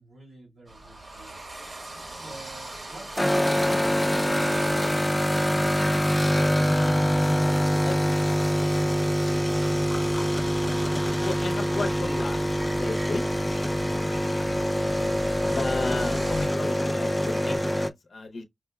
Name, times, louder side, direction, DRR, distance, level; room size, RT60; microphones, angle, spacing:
voice 1, 0.0-1.4 2.0-4.9, right 2 dB, 65° right, 2.7 m, -49 dB
sound 1, 0.7-16.5, right 1 dB, 45° right, 1.3 m, -42 dB
sound 2, 3.2-17.9, equal, 10° left, 0.4 m, -24 dB
voice 2, 6.6-10.6 11.2-12.4 12.7-13.2 15.5-18.4, left 3 dB, 75° left, 0.6 m, -35 dB
sound 3, 8.6-17.6, right 2 dB, 85° right, 1.4 m, -48 dB
5.4 x 2.1 x 2.2 m
wide cardioid pair, 95°, 0 cm